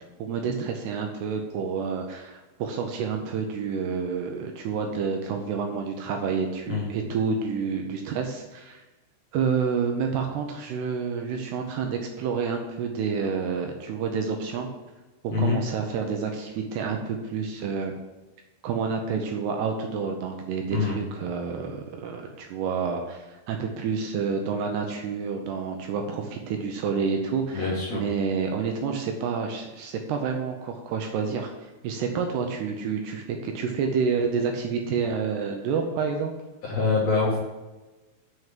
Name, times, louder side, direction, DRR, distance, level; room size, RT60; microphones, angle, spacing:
voice 1, 0.2-8.8 9.3-14.7 15.2-17.9 18.6-36.3, right 5 dB, 75° right, 3 dB, 2.6 m, -29 dB
voice 2, 27.5-28.0 36.6-37.4, left 4 dB, 50° left, -5 dB, 2.2 m, -24 dB
7.3 x 6.4 x 7.4 m, 1.1 s
omnidirectional pair, 5.3 m